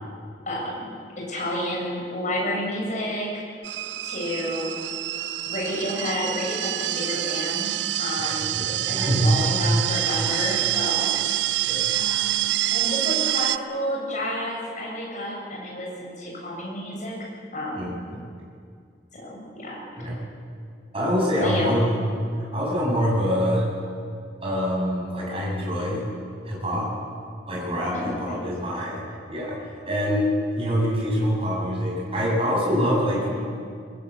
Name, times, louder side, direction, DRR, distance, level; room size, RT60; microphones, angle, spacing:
voice 1, 0.5-3.3 4.0-4.8 5.5-8.6 8.9-11.5 11.9-17.1 17.5-17.9 19.1-19.8 21.3-21.8 27.9-28.4 33.1-33.4, equal, 45° left, -2 dB, 7.7 m, -30 dB
sound 1, 3.6-13.6, right 15 dB, 80° right, 0.5 m, -26 dB
voice 2, 8.2-9.3 11.7-11.9 17.7-18.2 20.0-20.2 20.9-21.9 22.5-23.7 24.4-26.0 26.5-26.9 27.5-29.0 29.3-33.3, equal, 35° right, -4 dB, 7.2 m, -25 dB
21.5 x 21.0 x 8.4 m, 2.3 s
head